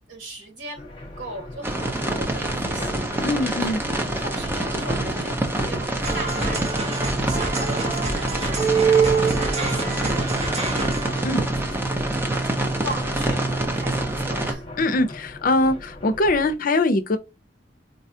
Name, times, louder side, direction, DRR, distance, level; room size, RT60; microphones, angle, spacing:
voice 1, 0.1-11.4 12.0-14.6, right 2 dB, 85° right, 1.6 m, -39 dB
sound 1, 0.8-16.6, left 1 dB, 30° left, 1.0 m, -40 dB
sound 2, 1.6-14.5, right 1 dB, 15° right, 0.7 m, -26 dB
voice 2, 3.2-3.8 11.2-11.4 14.8-17.2, left 2 dB, 50° left, 0.5 m, -22 dB
sound 3, 6.0-11.2, right 5 dB, 40° right, 0.9 m, -25 dB
4.1 x 2.3 x 2.7 m
head